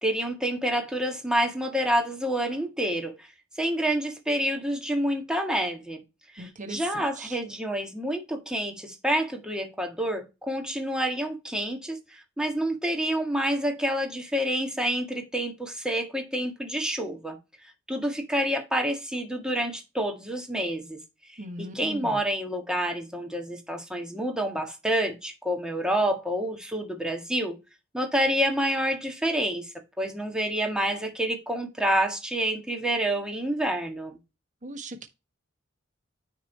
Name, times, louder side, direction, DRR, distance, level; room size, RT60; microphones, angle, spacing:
voice 1, 0.0-3.3 3.6-6.0 6.3-17.4 17.9-21.0 21.6-27.6 27.9-29.7 30.0-34.2, right 1 dB, 5° right, 1.7 m, -28 dB
voice 2, 6.4-7.4 21.4-22.2 34.6-35.1, right 2 dB, 40° right, 1.4 m, -39 dB
9.9 x 3.7 x 4.5 m
head